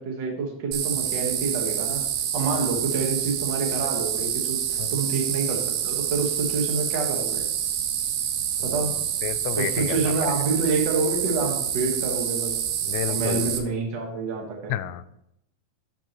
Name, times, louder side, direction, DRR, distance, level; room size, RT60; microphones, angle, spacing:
voice 1, 0.0-2.0 2.3-7.4 8.6-8.9 9.6-12.6 13.1-14.7, right 4 dB, 55° right, 1 dB, 1.2 m, -27 dB
sound 1, 0.7-13.6, right 9 dB, 75° right, 2.5 m, -27 dB
voice 2, 8.6-10.3 12.8-13.5 14.7-15.1, left 13 dB, 85° left, 14 dB, 2.4 m, -32 dB
11.5 x 7.2 x 3.1 m, 0.79 s
omnidirectional pair, 4.3 m